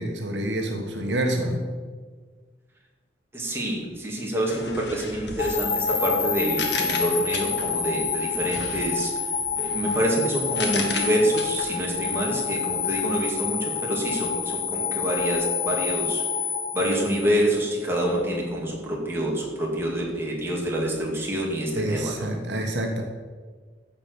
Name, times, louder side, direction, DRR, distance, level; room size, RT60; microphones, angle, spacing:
voice 1, 0.0-1.7 21.7-23.0, right 1 dB, 75° right, 2 dB, 1.5 m, -27 dB
voice 2, 3.3-9.1 9.6-16.2 16.7-22.3, right 1 dB, 15° right, -3 dB, 2.5 m, -27 dB
sound 1, 4.5-7.9 8.4-12.3, left 3 dB, 65° left, 1.7 m, -35 dB
sound 2, 5.4-17.6, left 6 dB, 50° left, 1.9 m, -28 dB
14.5 x 5.1 x 7.0 m, 1.5 s
head